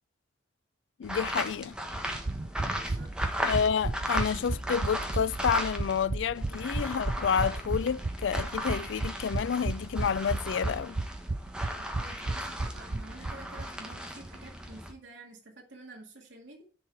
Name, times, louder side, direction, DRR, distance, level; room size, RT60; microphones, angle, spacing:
voice 1, 1.0-1.7 3.4-11.0, left 7 dB, 80° left, 0.4 m, -29 dB
sound 1, 1.0-6.1 6.3-14.9, equal, 5° right, 1.3 m, -37 dB
sound 2, 1.9-13.7 13.9-14.0 14.3-14.4, right 2 dB, 35° right, 0.5 m, -33 dB
voice 2, 2.7-3.5 12.0-16.6, right 2 dB, 75° right, 2.1 m, -50 dB
10.5 x 4.7 x 4.6 m
head